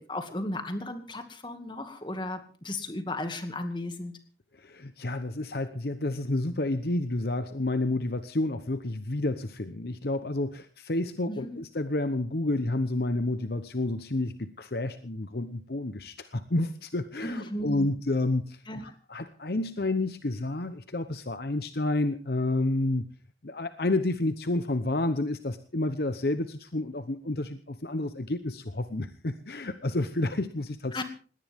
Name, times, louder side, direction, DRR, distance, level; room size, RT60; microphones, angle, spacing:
voice 1, 0.0-4.2 11.3-11.6 17.2-17.9 18.7-18.8 30.9-31.0, left 1 dB, 25° left, 7 dB, 2.2 m, -35 dB
voice 2, 4.5-23.1 23.4-31.0, left 2 dB, 60° left, 10 dB, 0.9 m, -30 dB
20.0 x 18.0 x 3.6 m, 0.39 s
head